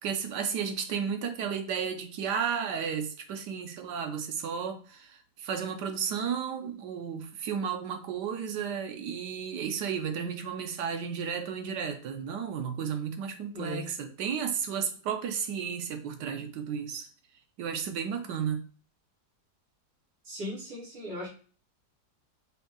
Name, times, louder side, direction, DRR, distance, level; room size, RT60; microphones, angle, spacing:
voice 1, 0.0-17.1 17.6-18.6, right 7 dB, 85° right, 1.4 m, -33 dB
voice 2, 13.5-13.9 20.2-21.3, left 1 dB, 70° right, 3.1 m, -37 dB
5.2 x 2.6 x 3.7 m
omnidirectional pair, 1.8 m